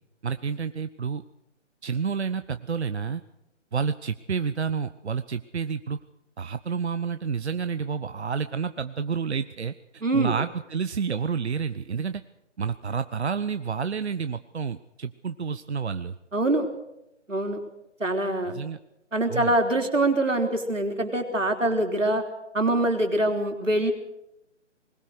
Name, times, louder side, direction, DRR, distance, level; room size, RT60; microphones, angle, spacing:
voice 1, 0.2-1.2 1.8-3.2 3.7-6.0 6.4-12.2 12.6-16.2 18.4-18.8 19.3-19.5, right 6 dB, 60° right, 11 dB, 0.9 m, -29 dB
voice 2, 10.0-10.3 16.3-16.7 17.3-17.6 18.0-18.6 19.1-22.2 22.5-23.9, right 1 dB, 85° right, 4 dB, 3.8 m, -24 dB
21.0 x 19.5 x 6.6 m, 0.88 s
figure-of-eight pair, 150°, 37 cm